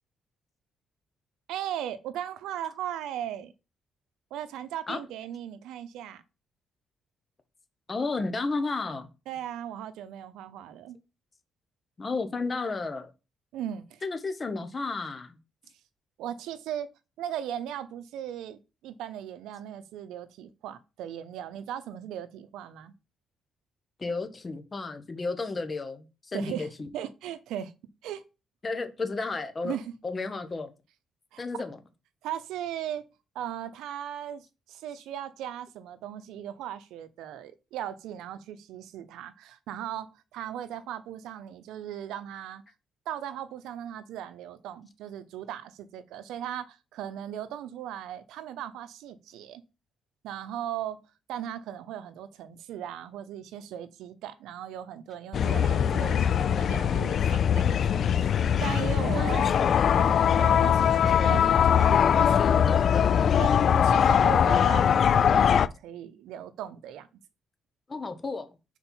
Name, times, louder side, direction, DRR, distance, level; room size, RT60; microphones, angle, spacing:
voice 1, 1.5-3.5 4.3-6.2 9.3-11.0 13.5-14.0 16.2-16.9 17.2-22.9 26.3-27.7 28.0-28.2 29.6-29.9 31.3-31.4 32.2-33.0 33.3-42.6 43.1-49.6 50.2-51.0 51.3-59.6 60.4-62.3 63.4-67.1, right 10 dB, 90° right, 0.6 m, -38 dB
voice 2, 7.9-9.1 12.0-13.1 14.0-15.4 24.0-26.9 28.6-29.8 30.0-30.7 31.4-31.8 59.1-60.2 61.2-61.3 61.9-63.2 67.9-68.5, left 3 dB, 30° left, 1.1 m, -33 dB
sound 1, 55.3-65.7, left 8 dB, 60° left, 0.3 m, -22 dB
5.4 x 4.3 x 4.5 m
cardioid pair, 90°, 0 cm